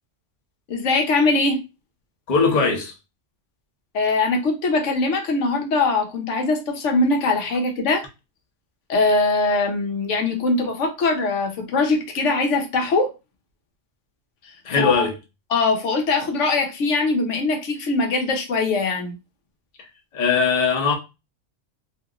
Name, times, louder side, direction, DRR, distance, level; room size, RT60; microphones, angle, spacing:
voice 1, 0.7-1.6 3.9-8.0 8.9-13.1 14.8-15.1 15.5-19.1, left 3 dB, 85° left, 1.1 m, -21 dB
voice 2, 2.3-2.9 14.6-15.2 20.1-20.9, left 5 dB, 45° left, 0.7 m, -20 dB
2.8 x 2.7 x 2.4 m
omnidirectional pair, 1.2 m